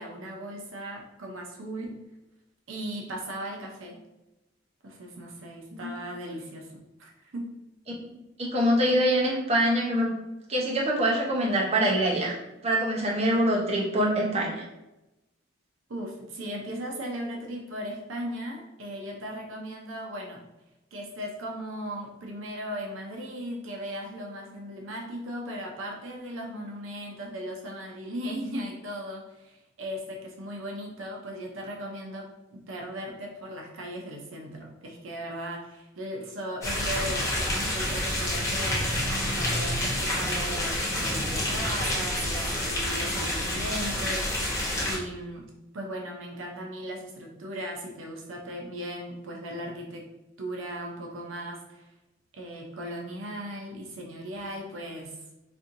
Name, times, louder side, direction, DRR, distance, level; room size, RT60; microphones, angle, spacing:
voice 1, 0.0-2.0 2.7-4.0 4.8-6.7 7.0-7.5 15.9-20.4 20.9-45.5 45.7-50.1 50.4-51.9 52.3-55.2, equal, 75° right, 0 dB, 0.6 m, -37 dB
voice 2, 8.1-10.1 10.5-12.3 12.6-14.6, right 1 dB, 35° right, -3 dB, 0.7 m, -24 dB
sound 1, 36.6-45.0, left 1 dB, 15° left, 0.8 m, -28 dB
4.3 x 2.6 x 2.5 m, 0.97 s
head